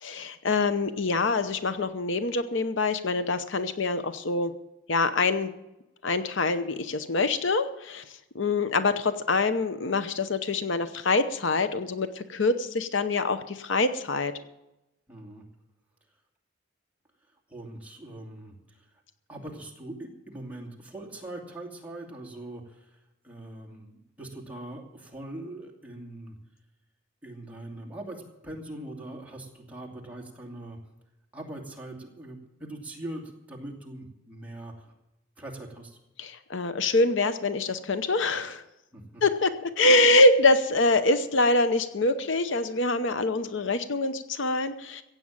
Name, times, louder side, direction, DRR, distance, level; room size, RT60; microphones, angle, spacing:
voice 1, 0.0-4.5 4.9-5.5 6.0-14.3 36.2-38.6 39.2-45.0, left 2 dB, 65° left, 11 dB, 0.8 m, -25 dB
voice 2, 15.1-15.4 17.5-18.9 19.3-26.4 27.2-30.8 31.3-34.9 35.4-36.0 38.9-39.2, right 1 dB, 10° right, -1 dB, 2.5 m, -42 dB
15.5 x 8.7 x 7.4 m, 0.93 s
head